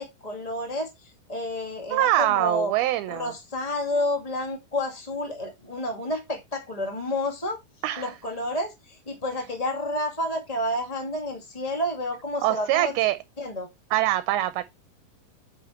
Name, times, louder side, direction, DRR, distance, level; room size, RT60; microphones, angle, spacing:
voice 1, 0.0-2.7 3.1-7.6 8.0-12.9 13.4-13.7, left 1 dB, 20° left, 1.1 m, -30 dB
voice 2, 1.9-3.3 7.8-8.1 12.4-13.2 13.9-14.6, right 15 dB, 80° right, 2.5 m, -24 dB
8.8 x 6.3 x 4.4 m
omnidirectional pair, 4.5 m